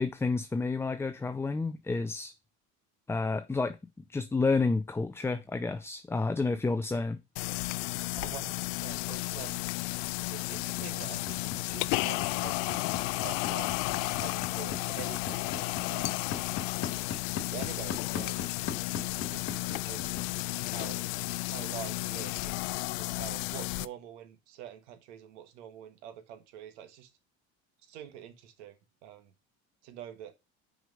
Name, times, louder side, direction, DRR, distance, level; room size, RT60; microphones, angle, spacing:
voice 1, 0.0-2.3 3.1-3.8 4.1-7.2, left 3 dB, 10° left, 0.4 m, -30 dB
sound 1, 7.4-23.9, left 22 dB, 70° left, 0.5 m, -33 dB
voice 2, 8.1-9.7 10.3-11.4 11.7-13.7 14.0-16.2 16.9-17.0 17.5-18.7 19.0-20.3 20.7-21.1 21.5-27.1 27.9-28.8 29.0-29.3 29.8-30.3, right 10 dB, 80° right, 1.5 m, -46 dB
sound 2, 10.5-20.7, left 8 dB, 50° left, 1.8 m, -37 dB
6.1 x 5.1 x 5.3 m
supercardioid pair, 95°, 34 cm